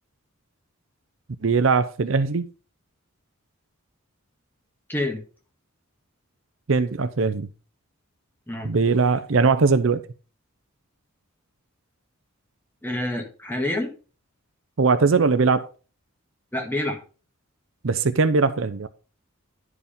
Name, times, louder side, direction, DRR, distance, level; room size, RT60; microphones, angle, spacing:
voice 1, 1.4-2.4 6.7-7.5 8.6-10.0 14.8-15.7 17.8-18.9, right 4 dB, 60° right, 0.6 m, -20 dB
voice 2, 4.9-5.2 8.5-8.7 12.8-13.9 16.5-17.0, left 1 dB, 10° left, 1.9 m, -27 dB
11.0 x 5.0 x 5.1 m
head